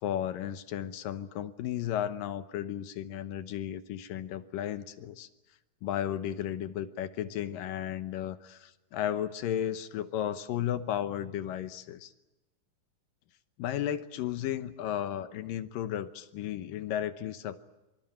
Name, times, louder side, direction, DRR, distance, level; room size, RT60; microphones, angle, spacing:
voice 1, 0.0-5.3 5.8-12.1 13.6-17.6, left 10 dB, 70° left, 11 dB, 2.5 m, -34 dB
25.5 x 24.5 x 8.9 m, 1.0 s
omnidirectional pair, 4.4 m